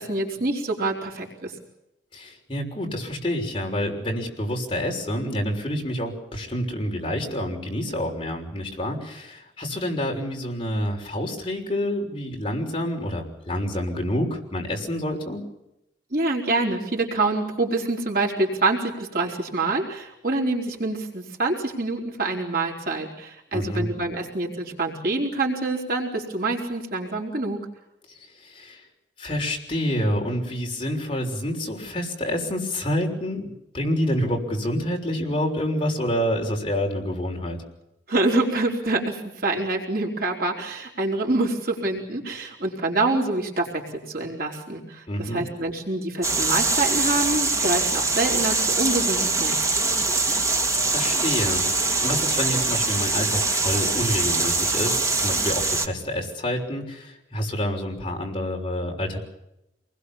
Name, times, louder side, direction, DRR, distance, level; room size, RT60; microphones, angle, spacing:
voice 1, 0.0-1.5 16.1-27.7 38.1-49.7, right 2 dB, 55° right, 0 dB, 4.4 m, -26 dB
voice 2, 2.1-15.4 23.5-23.9 28.4-28.8 29.2-37.6 45.1-45.4 50.7-59.2, left 1 dB, 30° left, 1 dB, 6.1 m, -28 dB
sound 1, 46.2-55.9, right 3 dB, 20° right, 2.1 m, -23 dB
27.5 x 21.0 x 7.3 m, 0.87 s
head